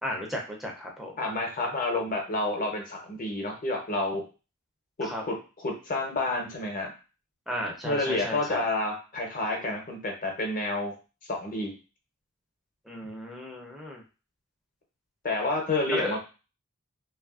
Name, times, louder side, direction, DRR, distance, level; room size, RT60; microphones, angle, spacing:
voice 1, 0.0-1.1 5.0-5.2 7.5-8.6 12.9-14.0 15.9-16.2, equal, ahead, -1 dB, 0.5 m, -34 dB
voice 2, 1.2-4.3 5.0-6.9 7.8-10.9 11.3-11.8 15.2-16.2, left 2 dB, 40° left, 1 dB, 0.7 m, -29 dB
3.0 x 2.3 x 2.3 m, 0.33 s
head